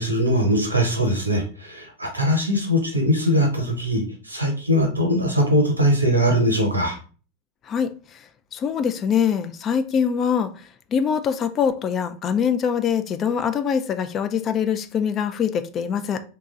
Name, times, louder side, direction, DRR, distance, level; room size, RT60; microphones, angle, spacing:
voice 1, 0.0-7.0, equal, 90° right, 0.8 m, -21 dB
voice 2, 7.7-8.2 8.5-10.6 10.9-16.2, left 7 dB, 30° left, 0.4 m, -23 dB
3.0 x 2.3 x 3.7 m
figure-of-eight pair, 85°, 0 cm